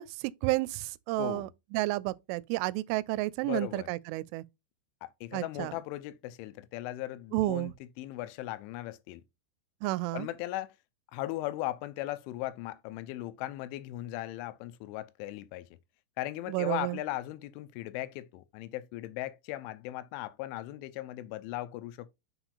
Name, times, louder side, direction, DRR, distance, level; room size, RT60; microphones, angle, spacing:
voice 1, 0.0-4.4 5.3-5.7 7.3-7.7 9.8-10.3 16.5-17.0, right 19 dB, 85° right, 3.0 m, -31 dB
voice 2, 1.2-1.5 3.4-3.9 5.0-9.2 10.1-10.8 11.1-15.7 16.2-22.1, left 15 dB, 85° left, 3.1 m, -38 dB
6.8 x 6.0 x 2.4 m
omnidirectional pair, 5.5 m